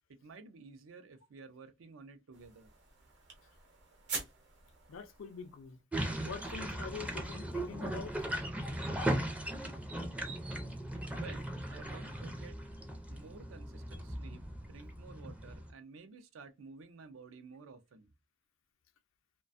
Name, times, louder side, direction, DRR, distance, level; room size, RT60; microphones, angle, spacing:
voice 1, 0.2-2.7 11.1-12.6 13.1-18.1, right 4 dB, 80° right, 0.4 m, -53 dB
sound 1, 2.3-5.9, right 4 dB, 65° right, 0.8 m, -45 dB
voice 2, 4.9-5.8 6.2-8.1, left 5 dB, 75° left, 0.4 m, -45 dB
sound 2, 5.9-15.7, right 1 dB, 5° right, 0.4 m, -38 dB
2.3 x 2.2 x 2.4 m
head